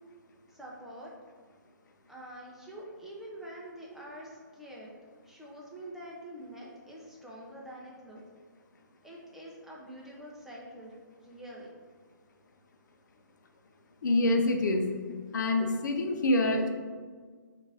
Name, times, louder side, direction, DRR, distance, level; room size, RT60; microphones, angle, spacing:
voice 1, 0.5-1.1 2.1-4.9 5.2-8.2 9.0-10.9 11.2-11.7, right 1 dB, 5° right, -5 dB, 0.6 m, -46 dB
voice 2, 14.0-14.9 15.3-16.7, left 2 dB, 65° left, 4 dB, 0.6 m, -26 dB
5.0 x 2.6 x 3.4 m, 1.5 s
hypercardioid pair, 140°, 11 cm